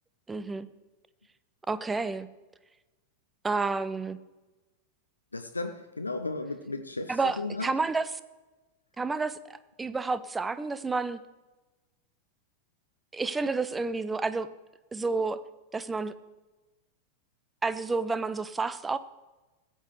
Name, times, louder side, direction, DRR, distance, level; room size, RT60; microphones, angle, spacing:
voice 1, 0.3-0.7 1.7-2.3 3.4-4.2 7.1-8.1 9.0-11.2 13.1-14.5 14.9-15.4 15.7-16.1 17.6-19.0, right 3 dB, 10° right, 15 dB, 0.5 m, -30 dB
voice 2, 5.3-7.7, left 2 dB, 80° left, 8 dB, 0.5 m, -35 dB
15.0 x 8.4 x 3.2 m, 1.1 s
figure-of-eight pair, 90°, 0 cm